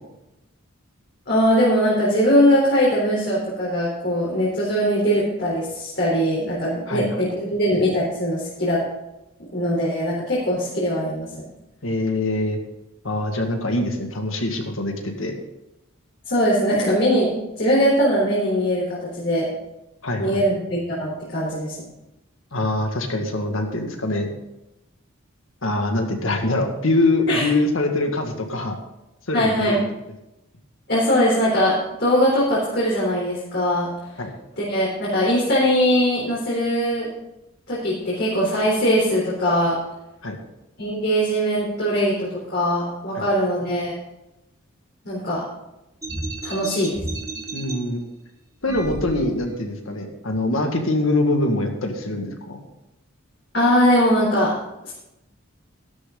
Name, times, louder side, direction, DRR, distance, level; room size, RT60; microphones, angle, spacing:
voice 1, 1.3-8.8 9.5-11.3 16.3-17.3 17.6-19.5 20.2-21.7 27.3-27.4 29.3-29.8 30.9-31.7 32.0-33.9 34.6-37.1 37.7-39.8 40.8-43.9 45.0-45.4 46.4-47.0 53.5-54.5 54.8-54.9, equal, 55° left, -6 dB, 3.8 m, -21 dB
voice 2, 11.8-12.6 13.0-15.3 20.0-20.4 22.5-24.3 25.6-28.8 29.3-29.8 34.2-34.3 40.2-40.4 43.1-43.2 47.5-48.0 48.6-52.6, left 2 dB, 75° left, 3 dB, 2.0 m, -24 dB
sound 1, 46.0-47.7 48.6-49.6, right 2 dB, 15° right, 1.6 m, -32 dB
12.5 x 12.5 x 3.9 m, 0.92 s
head